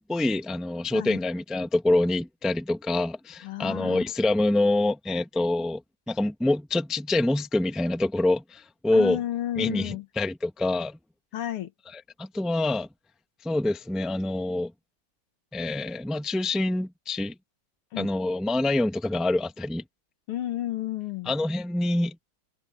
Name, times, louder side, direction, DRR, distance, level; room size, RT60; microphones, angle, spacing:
voice 1, 0.0-5.8 6.1-9.2 9.6-11.0 11.9-12.9 13.4-14.7 15.5-17.3 18.0-19.8 21.3-22.2, left 2 dB, ahead, 0.6 m, -26 dB
voice 2, 3.4-4.0 8.9-10.1 11.3-11.7 17.9-18.1 20.3-21.3, left 13 dB, 80° left, 2.1 m, -31 dB
omnidirectional pair, 2.4 m